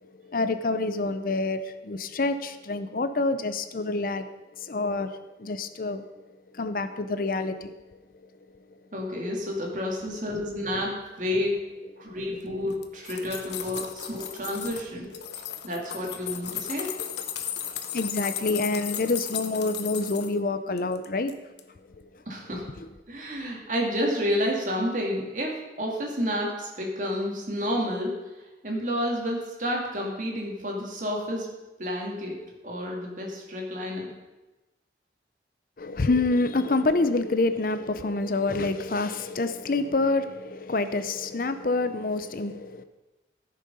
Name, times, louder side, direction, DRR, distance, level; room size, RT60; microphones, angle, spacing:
voice 1, 0.0-6.2 6.5-7.7 8.2-8.3 12.0-12.4 15.1-15.5 17.0-17.1 17.5-21.4 21.7-21.9 22.1-22.2 22.8-22.9 35.8-42.8, left 3 dB, 50° left, 0.6 m, -28 dB
voice 2, 8.9-11.6 12.0-15.1 15.6-16.9 22.3-22.6 23.1-25.5 25.8-28.1 28.6-31.5 31.8-32.4 32.6-34.1, equal, 45° right, 2.5 m, -30 dB
sound 1, 12.7-14.8 15.1-20.3 20.8-21.3 21.6-21.7, left 9 dB, 70° left, 0.9 m, -35 dB
14.5 x 6.5 x 5.5 m
head